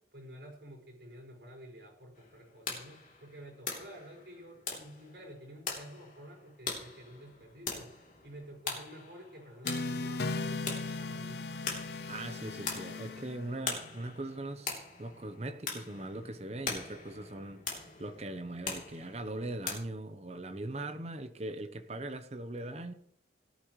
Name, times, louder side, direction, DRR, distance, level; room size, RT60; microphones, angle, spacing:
voice 1, 0.1-7.9 8.2-11.4, equal, 70° right, 0 dB, 5.1 m, -50 dB
sound 1, 2.2-19.8, left 4 dB, 45° left, 3.1 m, -43 dB
sound 2, 9.6-13.9, left 3 dB, 65° left, 0.6 m, -37 dB
voice 2, 12.1-14.7 15.0-22.9, right 2 dB, 35° right, 8 dB, 0.9 m, -40 dB
18.0 x 11.5 x 3.2 m, 0.67 s
head